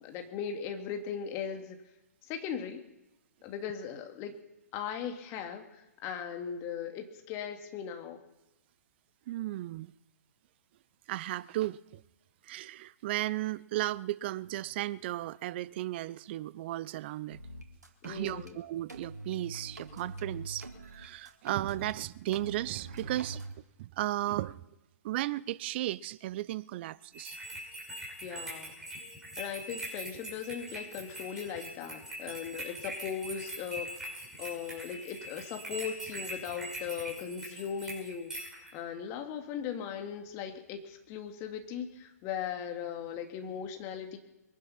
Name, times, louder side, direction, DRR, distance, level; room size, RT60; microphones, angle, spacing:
voice 1, 0.0-1.8 2.2-2.8 3.4-4.3 4.7-8.2 18.0-18.6 28.2-28.8 29.4-34.1 34.4-44.2, left 8 dB, 30° left, 2.2 m, -38 dB
voice 2, 9.3-9.9 11.1-12.0 12.4-17.4 18.0-23.5 23.8-24.6 25.0-27.4, right 15 dB, 40° right, 0.5 m, -35 dB
sound 1, 17.3-18.5 18.9-22.0 22.3-23.5, right 2 dB, 85° right, 1.9 m, -44 dB
sound 2, 27.1-38.7, right 1 dB, 5° right, 5.8 m, -42 dB
22.5 x 10.5 x 5.8 m
figure-of-eight pair, 120°, 9 cm